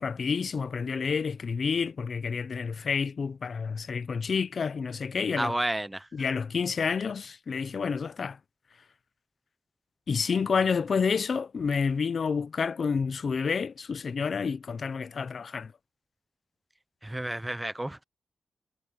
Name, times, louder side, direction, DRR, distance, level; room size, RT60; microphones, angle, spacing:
voice 1, 0.0-5.5 6.1-8.4 10.1-15.7, left 5 dB, 50° left, 0.6 m, -29 dB
voice 2, 5.4-6.1 17.0-18.0, right 1 dB, 10° right, 0.5 m, -31 dB
wide cardioid pair, 165°, 0 cm